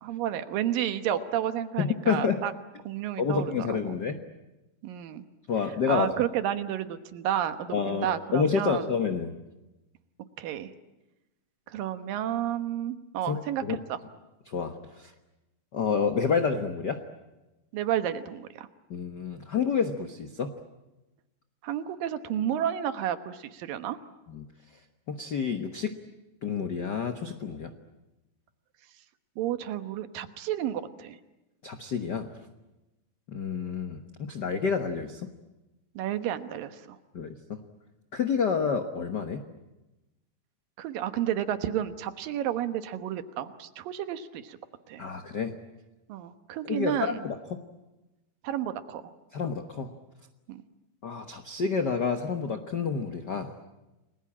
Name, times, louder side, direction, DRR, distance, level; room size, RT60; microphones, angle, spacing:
voice 1, 0.0-2.5 2.8-4.0 4.8-5.2 5.9-8.9 10.4-10.7 11.7-14.0 17.7-18.7 21.6-24.0 29.4-31.2 36.0-37.0 40.8-44.6 44.9-45.0 46.1-47.2 48.4-49.0 50.5-50.6, right 10 dB, 80° right, 10 dB, 2.9 m, -31 dB
voice 2, 1.8-2.4 3.2-4.2 5.5-6.1 7.7-9.3 13.3-13.8 14.5-15.1 15.7-17.0 18.9-20.5 24.3-24.5 25.1-25.9 26.4-27.7 31.6-32.3 33.3-35.3 37.1-37.6 38.1-39.4 45.0-45.5 46.7-47.6 49.3-49.9 51.0-53.5, left 6 dB, 75° left, 7 dB, 0.9 m, -29 dB
30.0 x 21.0 x 8.7 m, 1.0 s
omnidirectional pair, 4.0 m